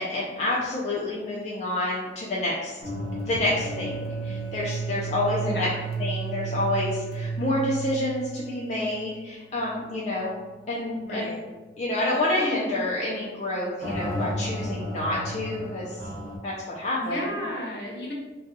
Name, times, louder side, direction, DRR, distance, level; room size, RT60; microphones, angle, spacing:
voice 1, 0.0-2.8 3.2-5.7 6.0-10.3 10.7-11.3 11.8-16.0 16.4-17.3, left 1 dB, 40° left, -6 dB, 0.4 m, -28 dB
sound 1, 2.8-9.3 9.6-9.7 10.3-10.5 13.8-16.4, right 3 dB, 60° right, 0.8 m, -32 dB
voice 2, 5.4-5.7 11.0-11.4 17.0-18.1, equal, 60° left, -4 dB, 0.9 m, -33 dB
2.7 x 2.3 x 3.9 m, 1.2 s
head